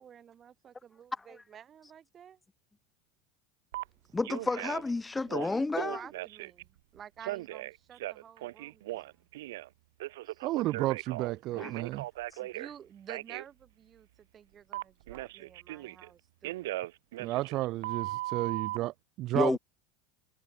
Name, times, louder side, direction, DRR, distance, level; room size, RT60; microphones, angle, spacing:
voice 1, 0.0-2.4 5.4-9.1 10.3-10.5 12.4-16.8, right 8 dB, 35° right, 5.6 m, -51 dB
Telephone, 3.7-3.8 4.2-4.9 5.2-6.6 7.2-9.7 10.0-12.7 13.1-13.4 14.7-16.1 16.4-18.8, right 17 dB, 85° right, 1.5 m, -38 dB
voice 2, 4.1-6.0 11.6-11.7 12.3-12.4 19.3-19.6, left 3 dB, 15° left, 0.4 m, -31 dB
voice 3, 10.4-12.1 17.2-19.6, right 17 dB, 55° right, 0.7 m, -32 dB
supercardioid pair, 110°, 0 cm